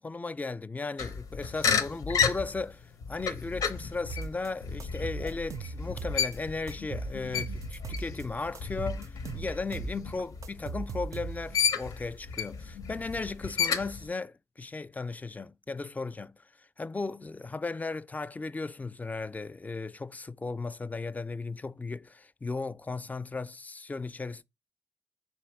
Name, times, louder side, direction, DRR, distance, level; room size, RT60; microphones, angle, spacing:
voice 1, 0.0-2.8 3.1-16.4 16.8-24.4, left 3 dB, 25° left, 0.4 m, -36 dB
sound 1, 1.0-11.1 11.5-14.1, left 6 dB, 85° left, 0.6 m, -32 dB
sound 2, 4.1-4.5 4.8-6.4 6.7-8.2 8.5-11.6, right 4 dB, 65° right, 0.4 m, -38 dB
3.5 x 2.9 x 4.6 m
cardioid pair, 50°, 6 cm